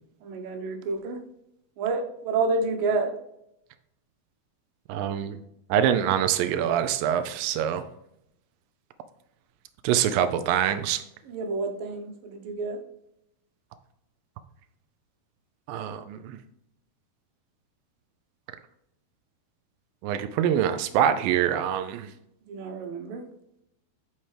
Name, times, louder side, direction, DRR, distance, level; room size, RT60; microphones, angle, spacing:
voice 1, 0.2-1.2 1.8-3.1 11.3-12.8 22.5-23.2, right 3 dB, 70° right, 4 dB, 2.4 m, -29 dB
voice 2, 4.9-5.4 5.7-7.8 9.8-11.0 15.7-16.4 20.0-22.1, right 9 dB, 85° right, 9 dB, 2.0 m, -25 dB
11.0 x 4.4 x 3.3 m, 0.79 s
omnidirectional pair, 4.6 m